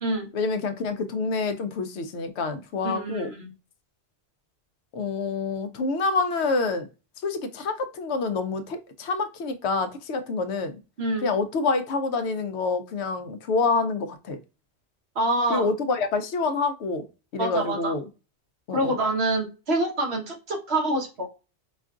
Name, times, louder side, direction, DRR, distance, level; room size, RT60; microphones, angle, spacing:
voice 1, 0.3-3.3 4.9-6.9 7.2-10.8 11.2-14.4 15.5-17.0 17.3-18.0 18.7-19.0, left 4 dB, 80° left, 9 dB, 0.9 m, -27 dB
voice 2, 2.8-3.5 11.0-11.3 15.1-15.7 17.4-17.9 18.7-21.3, right 2 dB, 70° right, 1 dB, 1.4 m, -26 dB
5.0 x 2.4 x 2.4 m, 0.30 s
omnidirectional pair, 1.1 m